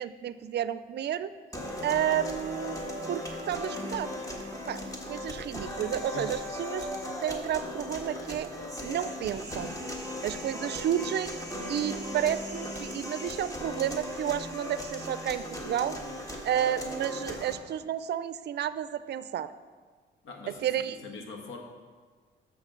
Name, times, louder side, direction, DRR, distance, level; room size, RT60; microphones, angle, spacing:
voice 1, 0.0-1.3 1.8-2.8 3.1-4.1 4.7-4.8 5.1-6.9 7.2-8.5 8.8-9.8 10.2-11.4 11.7-16.0 16.4-19.5 20.5-21.0, right 10 dB, 55° right, 14 dB, 0.4 m, -31 dB
sound 1, 1.5-17.5, left 1 dB, 15° left, 1.5 m, -37 dB
voice 2, 20.2-21.6, left 3 dB, 80° left, 3 dB, 1.4 m, -43 dB
13.5 x 5.8 x 3.8 m, 1.5 s
cardioid pair, 90°, 20 cm